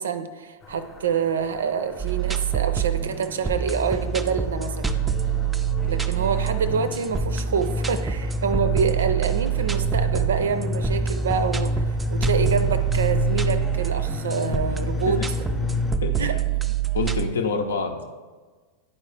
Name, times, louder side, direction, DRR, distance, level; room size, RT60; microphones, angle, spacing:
voice 1, 0.0-5.0 5.8-11.8 12.1-15.2 16.2-16.4, right 6 dB, 65° right, 11 dB, 0.5 m, -26 dB
sound 1, 0.6-16.0, left 3 dB, 25° left, 0.8 m, -30 dB
sound 2, 2.0-17.3, right 9 dB, 10° right, 0.4 m, -26 dB
voice 2, 16.9-18.0, left 4 dB, 65° left, 5 dB, 0.7 m, -26 dB
10.0 x 4.5 x 3.3 m, 1.4 s
figure-of-eight pair, 90°, 0 cm